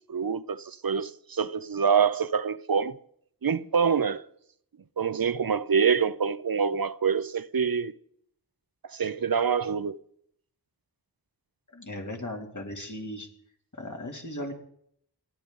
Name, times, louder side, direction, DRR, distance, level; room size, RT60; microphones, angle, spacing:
voice 1, 0.0-3.0 3.4-4.2 5.0-7.9 8.9-10.0, right 6 dB, 60° right, 0.7 m, -26 dB
voice 2, 11.7-13.3 13.8-14.5, left 1 dB, 50° left, 2.8 m, -37 dB
29.0 x 10.5 x 3.9 m
wide cardioid pair, 45°, 40 cm